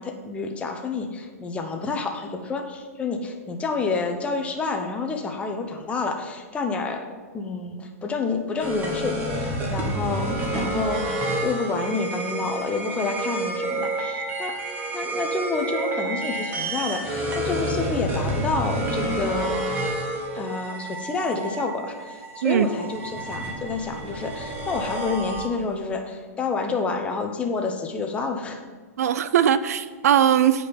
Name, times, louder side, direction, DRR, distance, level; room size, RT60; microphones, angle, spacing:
voice 1, 0.0-7.0 7.3-19.8 20.3-28.6, left 4 dB, 15° left, 3 dB, 0.8 m, -29 dB
sound 1, 8.6-25.9, right 1 dB, 20° right, 1.4 m, -29 dB
voice 2, 29.0-30.7, right 9 dB, 75° right, 13 dB, 0.5 m, -20 dB
8.5 x 5.1 x 5.3 m, 1.4 s
hypercardioid pair, 140°, 8 cm